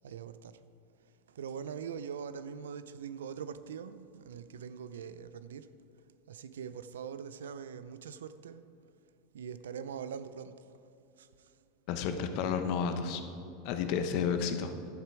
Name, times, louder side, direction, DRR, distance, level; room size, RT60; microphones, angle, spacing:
voice 1, 0.0-0.6 1.3-5.7 6.3-8.6 9.3-10.7 11.2-11.5, right 7 dB, 80° right, 0.5 m, -42 dB
voice 2, 11.9-13.2 13.6-14.7, left 6 dB, 55° left, 1.0 m, -31 dB
11.5 x 7.4 x 4.8 m
hypercardioid pair, 95°, 0 cm